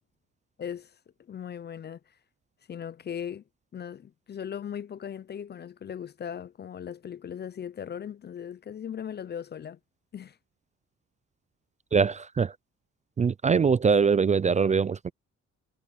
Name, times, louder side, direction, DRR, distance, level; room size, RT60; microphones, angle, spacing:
voice 1, 0.6-0.9 1.2-2.0 2.7-3.4 3.7-9.8 10.1-10.4, left 8 dB, 35° left, 0.5 m, -38 dB
voice 2, 11.9-12.5 13.2-15.1, right 5 dB, 25° right, 0.4 m, -23 dB
cardioid pair, 90°, 30 cm